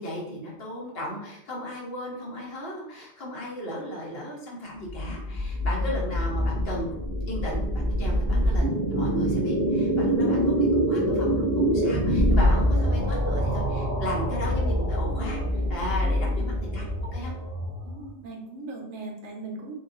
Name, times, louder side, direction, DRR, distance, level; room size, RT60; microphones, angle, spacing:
voice 1, 0.0-7.0 7.3-15.4 15.7-16.8 17.1-17.3, equal, 55° left, -2 dB, 1.0 m, -35 dB
sound 1, 4.9-18.1, equal, 55° right, 1.3 m, -25 dB
voice 2, 16.0-16.6 17.8-19.8, right 2 dB, 70° right, 1 dB, 1.0 m, -39 dB
3.8 x 2.4 x 2.4 m, 0.79 s
omnidirectional pair, 1.2 m